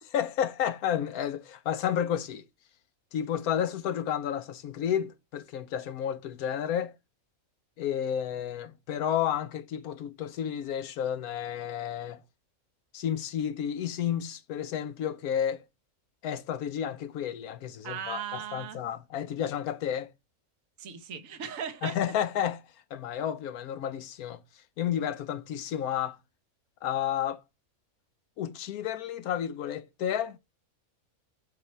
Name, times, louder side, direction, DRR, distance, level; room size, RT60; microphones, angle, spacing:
voice 1, 0.1-2.4 3.1-6.9 7.8-12.2 12.9-15.6 16.2-20.1 21.8-22.6 22.9-24.4 24.8-26.2 26.8-27.4 28.4-30.4, left 9 dB, 85° left, 1.2 m, -31 dB
voice 2, 17.8-18.8 20.8-22.0, right 7 dB, 65° right, 1.4 m, -37 dB
8.1 x 4.3 x 3.3 m
omnidirectional pair, 1.5 m